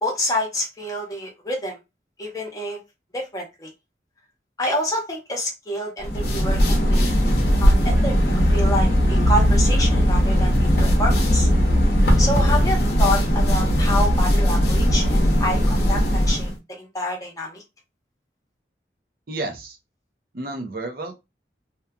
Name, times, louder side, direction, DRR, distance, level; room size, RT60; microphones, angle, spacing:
voice 1, 0.0-1.8 2.2-2.8 3.1-3.7 4.6-7.1 7.6-11.5 12.2-17.6, left 1 dB, 20° left, -1 dB, 0.9 m, -28 dB
sound 1, 6.0-16.5, equal, 65° left, 0.8 m, -18 dB
voice 2, 19.3-19.8 20.3-21.1, right 2 dB, 55° right, 4 dB, 0.7 m, -31 dB
2.8 x 2.4 x 2.3 m, 0.23 s
head